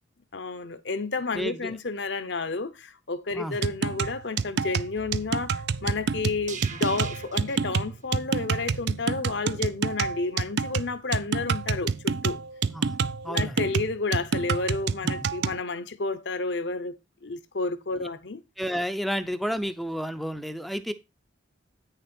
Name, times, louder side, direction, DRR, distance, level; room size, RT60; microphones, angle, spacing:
voice 1, 0.3-12.4 13.2-17.0 17.2-18.4, left 3 dB, 65° left, 0.8 m, -31 dB
voice 2, 1.3-1.8 3.3-3.6 12.7-13.0 13.2-13.6 18.0-18.1 18.6-20.9, equal, ahead, 0.5 m, -31 dB
sound 1, 3.6-15.6, right 5 dB, 60° right, 0.4 m, -28 dB
sound 2, 4.9-9.2 9.5-9.6, right 5 dB, 40° right, 1.1 m, -44 dB
9.1 x 6.7 x 4.3 m
head